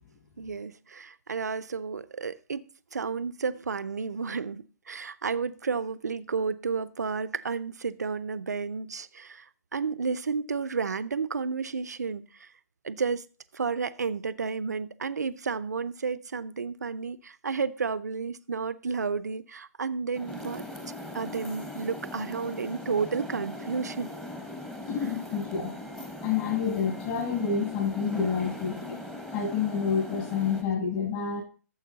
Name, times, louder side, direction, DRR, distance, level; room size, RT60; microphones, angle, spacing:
voice 1, 0.4-12.5 12.8-13.2 13.5-20.6 21.1-24.1, right 5 dB, 80° right, 0.6 m, -32 dB
sound 1, 20.1-30.6, left 1 dB, 5° left, 1.3 m, -40 dB
voice 2, 24.9-25.7 26.2-29.0 29.3-31.4, left 6 dB, 40° left, 6.8 m, -28 dB
13.5 x 7.2 x 4.0 m
figure-of-eight pair, 130°, 9 cm